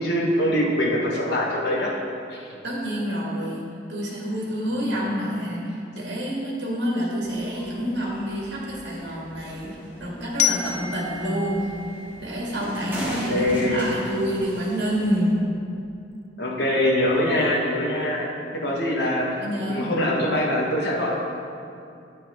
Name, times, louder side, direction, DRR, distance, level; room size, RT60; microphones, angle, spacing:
voice 1, 0.0-1.9 2.3-2.5 13.0-13.9 16.4-21.1, left 1 dB, 65° left, -3 dB, 1.2 m, -24 dB
voice 2, 2.6-11.7 12.2-15.3 19.4-19.9, equal, 75° right, -4 dB, 1.9 m, -28 dB
sound 1, 7.2-15.3, right 1 dB, 10° right, 1.4 m, -38 dB
Glockenspiel, 10.4-13.3, left 10 dB, 40° left, 0.4 m, -30 dB
8.4 x 7.1 x 3.6 m, 2.6 s
head